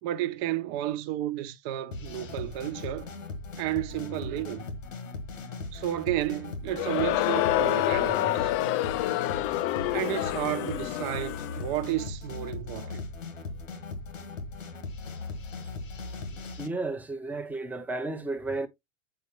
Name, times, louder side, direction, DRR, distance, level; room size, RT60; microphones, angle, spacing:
voice 1, 0.0-3.1 3.6-4.7 5.7-8.5 9.9-13.1 16.3-16.5, right 13 dB, 50° right, 1.1 m, -32 dB
sound 1, 1.9-16.7, left 3 dB, 90° left, 1.4 m, -39 dB
Crowd, 6.7-11.7, left 15 dB, 35° left, 0.5 m, -27 dB
voice 2, 16.6-18.7, right 3 dB, 5° right, 0.8 m, -33 dB
8.0 x 4.9 x 3.0 m
hypercardioid pair, 100°, 38 cm